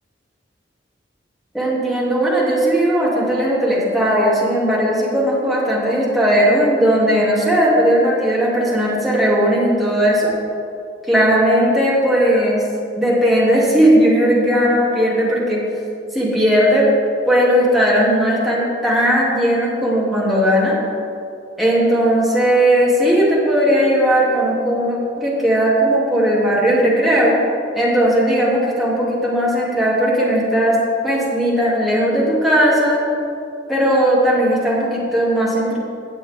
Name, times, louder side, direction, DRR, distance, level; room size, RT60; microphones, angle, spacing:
voice 1, 1.5-10.3 11.1-12.6 13.0-15.6 16.1-16.9 17.3-20.8 21.6-27.3 27.7-30.8 31.0-33.0 33.7-35.8, equal, ahead, -7 dB, 2.8 m, -17 dB
17.0 x 8.2 x 3.7 m, 2.6 s
head